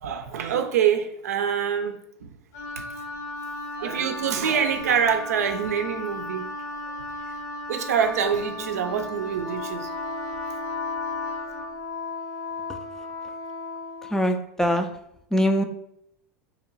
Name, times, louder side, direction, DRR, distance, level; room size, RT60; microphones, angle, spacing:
voice 1, 0.0-2.3 2.8-2.9 3.8-6.5 7.7-9.9, right 7 dB, 90° right, 0.5 m, -25 dB
Wind instrument woodwind instrument, 2.5-11.7, left 1 dB, 85° left, 1.5 m, -36 dB
Wind instrument woodwind instrument 2, 8.1-14.3, left 4 dB, 60° left, 0.9 m, -35 dB
voice 2, 14.1-14.9 15.3-15.6, equal, 5° left, 0.4 m, -22 dB
3.0 x 2.9 x 3.8 m
hypercardioid pair, 105°, 8 cm